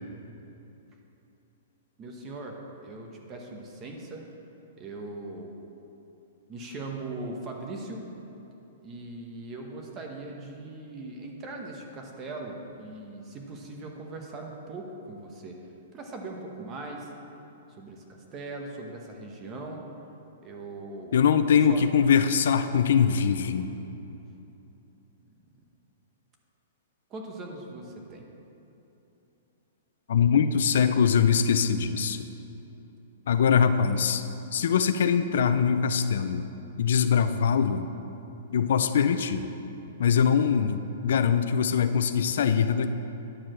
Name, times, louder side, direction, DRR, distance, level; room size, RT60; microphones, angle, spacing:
voice 1, 2.0-2.6 2.8-4.2 4.8-5.5 6.5-8.0 8.8-15.6 15.9-17.1 17.8-19.8 20.4-21.4 21.6-21.9 27.1-28.3, right 2 dB, 20° right, 1 dB, 1.0 m, -40 dB
voice 2, 21.1-23.7 30.1-32.3 33.3-34.2 34.5-36.5 36.8-37.8 38.5-39.5 40.0-42.9, left 7 dB, 70° left, 10 dB, 0.5 m, -22 dB
9.9 x 4.7 x 7.5 m, 2.9 s
hypercardioid pair, 165°, 0 cm